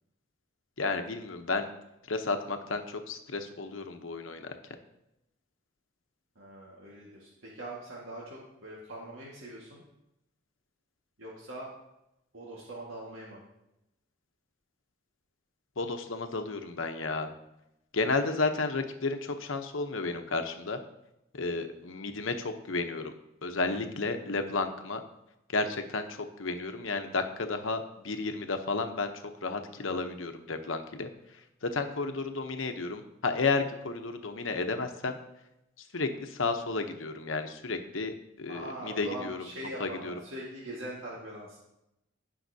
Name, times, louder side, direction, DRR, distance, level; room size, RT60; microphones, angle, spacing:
voice 1, 0.8-1.6 2.1-4.5 15.8-17.3 17.9-20.8 21.3-23.1 23.4-25.0 25.5-29.1 29.4-31.1 31.6-35.2 35.9-39.4 39.8-40.1, left 3 dB, 90° left, 6 dB, 0.9 m, -32 dB
voice 2, 6.4-9.8 11.2-11.7 12.3-13.4 38.5-41.6, right 1 dB, 85° right, -5 dB, 1.8 m, -42 dB
16.5 x 5.6 x 2.8 m, 0.88 s
head